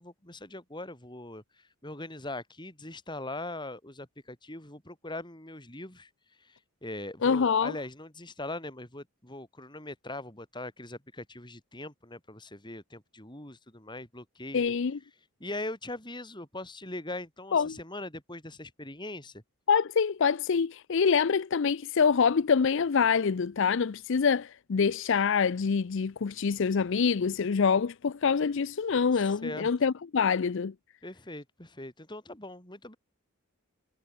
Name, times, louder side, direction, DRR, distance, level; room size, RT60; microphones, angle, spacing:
voice 1, 0.0-6.1 6.4-14.7 15.4-19.4 29.4-29.7 31.0-33.0, left 2 dB, 20° left, 5.4 m, -41 dB
voice 2, 7.2-7.7 14.5-15.0 17.5-17.8 19.7-30.7, left 6 dB, 60° left, 0.5 m, -25 dB
head